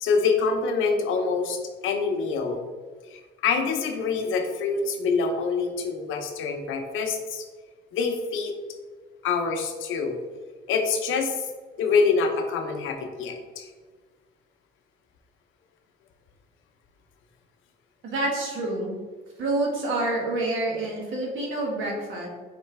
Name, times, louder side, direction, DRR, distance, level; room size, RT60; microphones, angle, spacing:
voice 1, 0.0-2.6 3.1-7.4 7.9-8.5 9.2-10.1 10.7-11.4 11.8-13.7, left 5 dB, 90° left, 5 dB, 0.6 m, -25 dB
voice 2, 18.0-18.9 19.4-22.3, right 2 dB, 80° right, -2 dB, 1.3 m, -27 dB
4.3 x 3.2 x 3.2 m, 1.4 s
cardioid pair, 90°, 20 cm